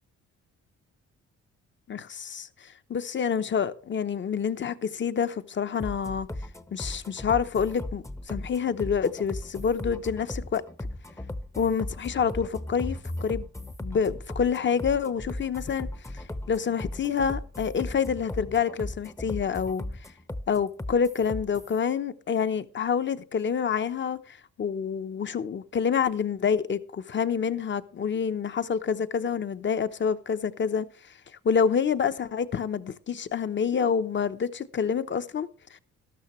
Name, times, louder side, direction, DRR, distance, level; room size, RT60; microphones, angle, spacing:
voice 1, 1.9-6.3 6.7-10.6 11.6-13.5 13.8-15.9 16.1-19.8 20.5-31.1 31.4-35.8, left 7 dB, 40° left, 0.9 m, -27 dB
sound 1, 5.8-21.8, left 1 dB, 10° left, 0.8 m, -37 dB
13.0 x 12.5 x 3.2 m
cardioid pair, 90°, 30 cm